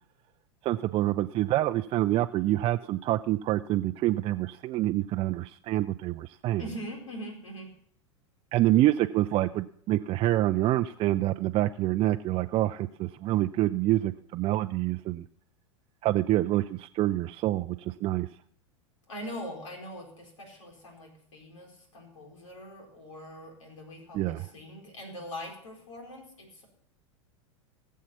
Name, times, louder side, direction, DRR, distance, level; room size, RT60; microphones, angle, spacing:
voice 1, 0.6-6.6 8.5-15.2 16.0-18.3 24.1-24.5, right 15 dB, 35° right, 8 dB, 0.5 m, -27 dB
voice 2, 6.6-7.7 19.1-26.7, equal, 75° left, 2 dB, 4.4 m, -42 dB
18.5 x 7.4 x 5.8 m, 0.66 s
hypercardioid pair, 90°, 16 cm